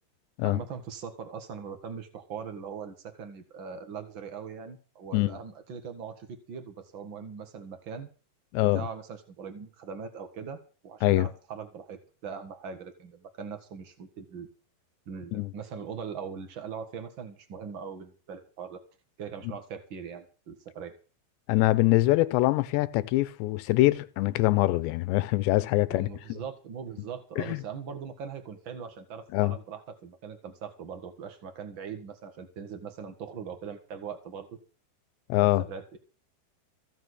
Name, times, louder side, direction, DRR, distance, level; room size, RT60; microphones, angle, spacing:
voice 1, 0.4-8.1 8.7-14.5 15.1-18.8 19.2-20.9 25.9-34.5 35.4-36.0, right 6 dB, 85° right, 1.0 m, -41 dB
voice 2, 8.5-8.8 11.0-11.3 15.3-15.5 21.5-26.1 27.4-27.6 29.3-29.6 35.3-35.6, left 18 dB, 90° left, 3.0 m, -24 dB
15.5 x 6.8 x 8.0 m
omnidirectional pair, 4.9 m